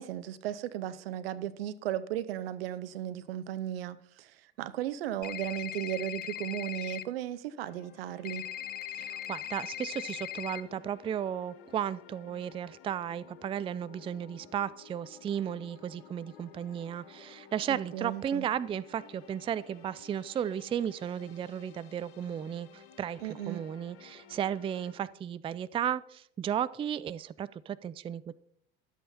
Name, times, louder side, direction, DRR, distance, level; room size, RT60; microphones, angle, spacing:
voice 1, 0.0-8.5 17.7-18.5 23.2-23.6, right 12 dB, 75° right, 0.7 m, -36 dB
sound 1, 5.2-7.0 8.3-10.6, left 12 dB, 30° left, 0.6 m, -39 dB
sound 2, 7.6-24.9, left 7 dB, 70° left, 1.5 m, -55 dB
voice 2, 8.9-28.3, right 9 dB, 20° right, 0.4 m, -34 dB
12.0 x 8.3 x 4.2 m
hypercardioid pair, 70°, 30 cm